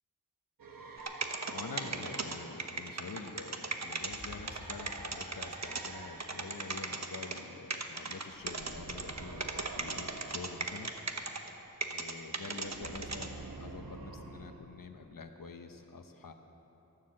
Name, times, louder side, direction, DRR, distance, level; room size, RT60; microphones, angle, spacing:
sound 1, 0.6-8.0 8.3-14.6, right 3 dB, 80° right, 1.2 m, -49 dB
sound 2, 1.0-5.9 6.2-7.4 7.7-11.5 11.8-13.3, right 4 dB, 55° right, 1.1 m, -37 dB
voice 1, 1.5-10.9 11.5-11.6 11.9-16.3, left 4 dB, 75° left, 6 dB, 1.0 m, -46 dB
sound 3, 4.0-8.0, left 1 dB, 30° left, 2.2 m, -55 dB
12.5 x 11.5 x 7.6 m, 3.0 s
wide cardioid pair, 70°, 33 cm